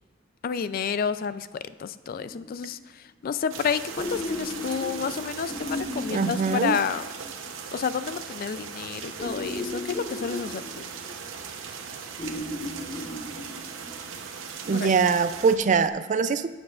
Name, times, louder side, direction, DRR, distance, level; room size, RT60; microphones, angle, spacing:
voice 1, 0.4-1.5 1.8-2.8 3.2-7.1 7.7-10.8 14.7-14.9, left 6 dB, 50° left, 14 dB, 0.3 m, -30 dB
sound 1, 2.1-2.8 4.0-7.5 9.2-11.4 12.2-14.2 15.9-16.0, left 1 dB, 25° left, 0.8 m, -36 dB
sound 2, 3.5-15.6, right 6 dB, 85° right, 0.9 m, -39 dB
voice 2, 6.1-6.8 14.6-16.5, right 5 dB, 40° right, 12 dB, 0.4 m, -23 dB
16.5 x 7.2 x 2.4 m, 1.4 s
head